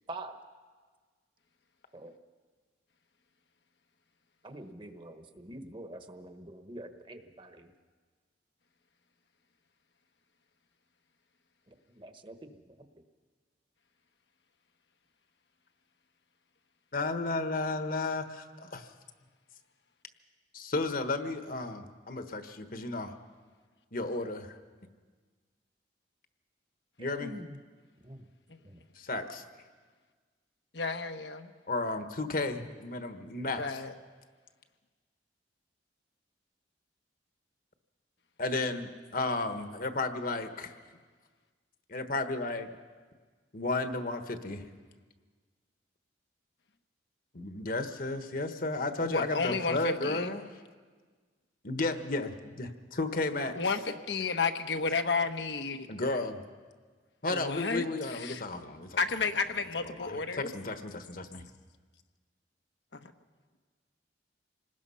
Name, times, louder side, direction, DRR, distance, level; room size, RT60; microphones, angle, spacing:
voice 1, 4.4-7.7 11.7-12.9 27.0-27.6 28.0-28.2 28.6-28.8, right 1 dB, 30° right, 7 dB, 1.2 m, -45 dB
voice 2, 16.9-18.9 20.5-23.2 23.9-24.6 27.0-27.3 28.9-29.4 31.7-33.6 38.4-40.7 41.9-42.7 43.5-44.7 47.3-50.4 51.6-53.6 55.9-56.4 57.2-59.0 59.8-61.5, left 2 dB, 50° left, 8 dB, 1.3 m, -33 dB
voice 3, 30.7-31.5 33.6-33.9 49.0-50.3 53.5-55.9 57.3-58.4 59.0-60.5 62.9-63.1, left 4 dB, 75° left, 7 dB, 1.1 m, -32 dB
27.0 x 19.5 x 5.7 m, 1.5 s
head